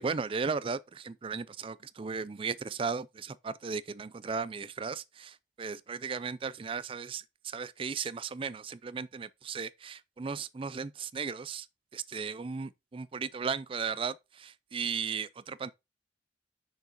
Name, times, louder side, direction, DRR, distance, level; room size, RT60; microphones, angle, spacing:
voice 1, 0.0-11.7 11.9-15.7, right 5 dB, 30° right, 0.4 m, -36 dB
6.6 x 4.8 x 4.3 m
head